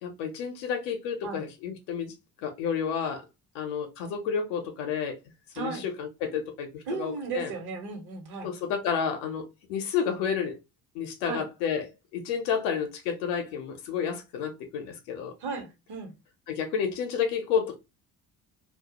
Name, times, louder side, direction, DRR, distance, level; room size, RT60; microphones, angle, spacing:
voice 1, 0.0-2.1 2.4-3.2 3.5-5.2 5.6-7.5 8.4-10.6 10.9-15.3 16.5-17.8, left 7 dB, 75° left, 0.7 m, -30 dB
voice 2, 5.5-5.8 6.9-8.5 11.2-11.4 15.4-16.1, right 5 dB, 55° right, 1.0 m, -35 dB
2.3 x 2.0 x 2.8 m
hypercardioid pair, 50°, 48 cm